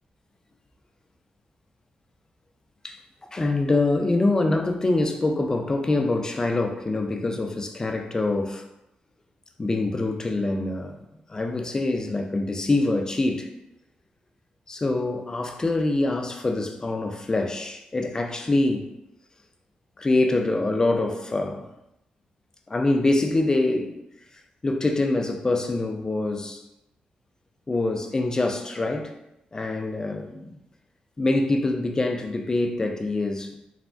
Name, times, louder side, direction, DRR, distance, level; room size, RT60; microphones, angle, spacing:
voice 1, 3.3-8.6 9.6-11.0 11.3-13.5 14.7-18.9 20.0-21.7 22.7-24.0 24.6-26.6 27.7-29.2 29.5-30.5 31.2-33.5, left 2 dB, 25° left, 0.3 m, -25 dB
3.1 x 2.0 x 2.5 m
cardioid pair, 100°, 3 cm